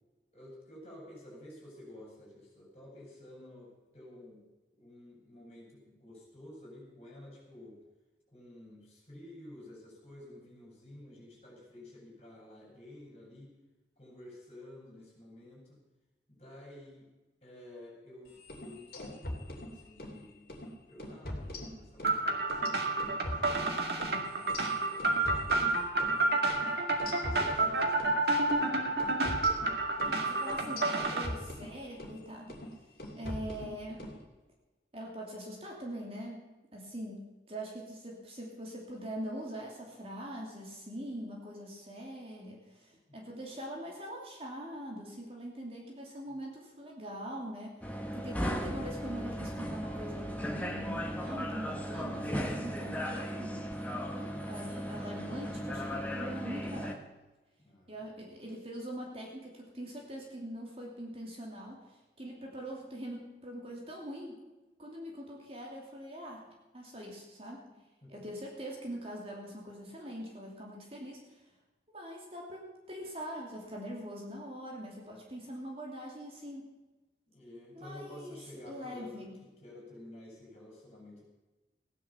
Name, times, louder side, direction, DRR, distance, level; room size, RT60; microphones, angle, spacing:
voice 1, 0.3-4.4 4.7-7.8 8.3-13.5 14.0-15.8 16.3-17.0 17.4-20.5 20.9-23.8 24.3-26.3 27.2-29.0 29.9-30.2 43.1-43.2 57.6-58.2 68.0-68.3 77.3-81.2, left 1 dB, 35° left, -3 dB, 6.9 m, -52 dB
sound 1, 18.4-20.2 20.5-20.7 21.0-22.2 22.5-26.2 26.5-26.7 27.0-28.2 28.5-28.7 29.0-32.2 32.5-32.7 33.0-34.2, left 1 dB, 55° left, 2.9 m, -42 dB
sound 2, 22.0-31.3, right 2 dB, 70° right, 2.0 m, -30 dB
voice 2, 30.0-32.6 33.2-34.1 34.9-36.5 36.7-53.7 54.1-57.0 57.9-64.4 64.8-66.5 66.7-67.6 68.1-71.4 71.9-76.7 77.7-79.4, equal, 35° right, -1 dB, 2.8 m, -43 dB
sound 3, 47.8-56.9, equal, 10° left, 1.4 m, -36 dB
16.5 x 9.9 x 7.1 m, 1.1 s
head